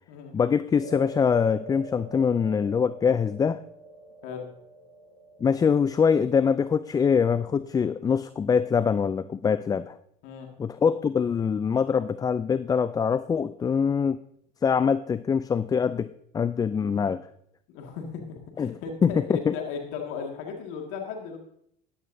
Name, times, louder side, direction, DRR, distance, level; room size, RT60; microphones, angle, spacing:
voice 1, 0.3-3.6 5.4-10.0 10.6-14.2 14.6-17.3 18.6-19.5, left 6 dB, 20° left, 15 dB, 0.3 m, -24 dB
sound 1, 0.8-9.2, right 2 dB, 80° right, 3.4 m, -46 dB
voice 2, 17.7-21.4, left 6 dB, 65° left, 2 dB, 2.0 m, -36 dB
14.5 x 11.0 x 2.7 m, 0.71 s
supercardioid pair, 90°, 21 cm